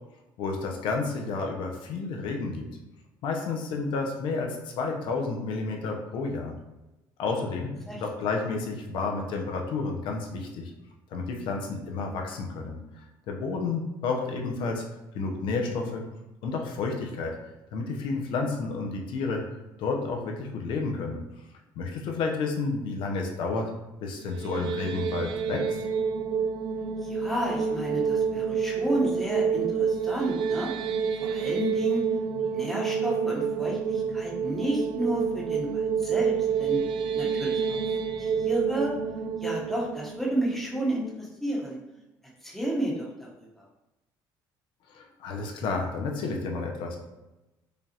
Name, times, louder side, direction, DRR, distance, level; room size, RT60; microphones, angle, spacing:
voice 1, 0.4-2.7 3.2-6.5 7.2-10.7 11.1-12.8 13.3-14.8 15.1-16.0 16.4-17.3 17.7-19.4 19.8-21.2 21.8-23.7 24.0-25.8 44.9-47.0, left 4 dB, 70° left, 2 dB, 0.7 m, -31 dB
sound 1, 24.2-41.3, right 6 dB, 60° right, 0.4 m, -28 dB
voice 2, 27.1-30.7 31.2-32.0 32.5-36.8 37.1-37.8 38.2-38.9 39.4-41.8 42.4-43.5, right 1 dB, 5° left, -4 dB, 1.0 m, -31 dB
5.0 x 2.4 x 2.8 m, 0.99 s
cardioid pair, 130°, 9 cm